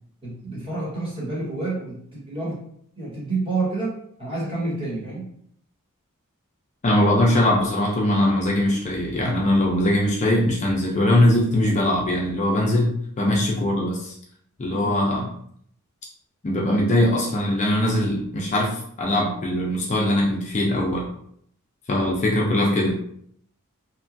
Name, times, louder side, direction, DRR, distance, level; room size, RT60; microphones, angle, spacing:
voice 1, 0.2-2.6 2.9-5.3 13.2-13.5 14.7-15.1, right 3 dB, 25° right, -8 dB, 1.2 m, -29 dB
voice 2, 6.8-14.1 14.6-15.3 16.4-21.1 21.9-23.0, left 1 dB, 30° left, -2 dB, 0.4 m, -21 dB
2.9 x 2.3 x 2.5 m, 0.66 s
head